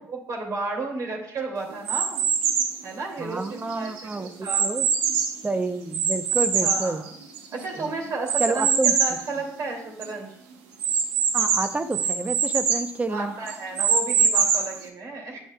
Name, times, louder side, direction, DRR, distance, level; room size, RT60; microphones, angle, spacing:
voice 1, 0.0-2.2 2.8-4.6 6.6-7.1 7.5-10.3 13.1-15.4, right 3 dB, 50° right, 0 dB, 2.4 m, -33 dB
sound 1, 1.8-2.8 3.4-5.4 5.9-7.6 8.3-9.2 9.7-9.8 10.0-10.1 10.8-12.9 13.5-14.8, right 6 dB, 80° right, 0.9 m, -23 dB
voice 2, 3.2-4.9 5.4-7.0 7.7-7.9 8.4-8.9 11.3-13.3, right 3 dB, 20° right, 9 dB, 0.7 m, -29 dB
9.5 x 6.2 x 2.3 m, 0.69 s
hypercardioid pair, 60°, 7 cm